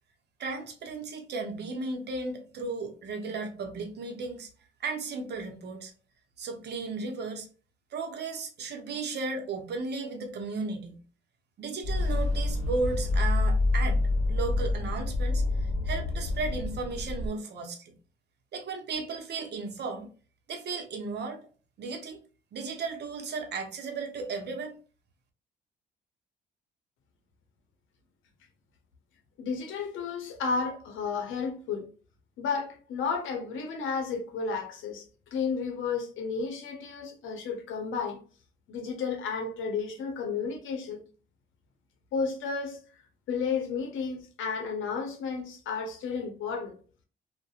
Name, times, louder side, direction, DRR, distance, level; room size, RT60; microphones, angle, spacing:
voice 1, 0.4-4.5 4.8-5.9 6.4-7.5 7.9-11.0 11.6-17.9 18.5-20.1 20.5-21.4 21.8-22.2 22.5-24.8, right 3 dB, 60° right, 0.7 m, -35 dB
sound 1, 11.8-17.3, left 2 dB, 35° left, 0.9 m, -27 dB
voice 2, 29.4-31.9 32.4-35.1 35.3-38.2 38.7-41.0 42.1-42.8 43.3-46.8, left 5 dB, 80° left, 0.7 m, -32 dB
2.6 x 2.2 x 2.3 m
cardioid pair, 90°, 20 cm